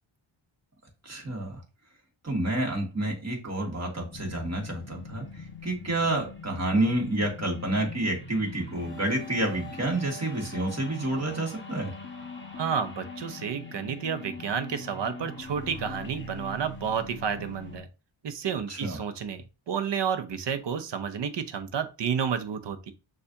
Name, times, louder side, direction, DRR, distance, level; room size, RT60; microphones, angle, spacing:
voice 1, 1.0-1.6 2.2-11.9 18.7-19.0, right 1 dB, 30° right, -1 dB, 1.8 m, -29 dB
sound 1, 4.1-17.8, left 3 dB, 25° left, 1.3 m, -42 dB
voice 2, 12.6-17.9 18.2-22.9, right 7 dB, 60° right, 11 dB, 0.8 m, -31 dB
6.5 x 2.6 x 2.7 m, 0.30 s
cardioid pair, 85°, 49 cm